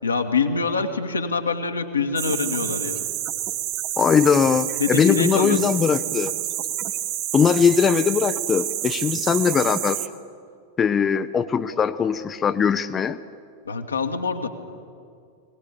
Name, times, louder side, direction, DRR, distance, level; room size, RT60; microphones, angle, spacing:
voice 1, 0.0-3.1 4.8-5.6 13.6-14.5, left 4 dB, 75° left, 5 dB, 1.7 m, -25 dB
sound 1, 2.2-10.1, right 12 dB, 40° right, 1.0 m, -28 dB
voice 2, 4.0-6.3 7.3-10.0 10.8-13.2, left 7 dB, 20° left, 10 dB, 0.6 m, -20 dB
21.5 x 19.0 x 8.3 m, 2.3 s
figure-of-eight pair, 90°, 0 cm